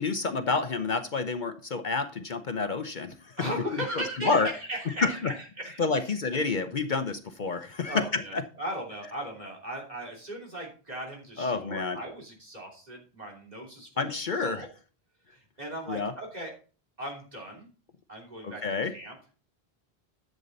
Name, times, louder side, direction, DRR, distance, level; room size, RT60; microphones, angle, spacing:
voice 1, 0.0-3.5 4.2-4.5 5.0-5.3 5.8-8.4 11.4-12.0 14.0-14.7 15.9-16.1 18.4-18.9, left 4 dB, 50° left, 8 dB, 0.9 m, -29 dB
voice 2, 3.4-5.8 7.6-13.9 14.4-14.7 15.3-16.5 17.0-17.7 18.1-19.4, right 1 dB, 40° right, -1 dB, 3.3 m, -38 dB
11.0 x 7.5 x 4.0 m, 0.37 s
omnidirectional pair, 1.0 m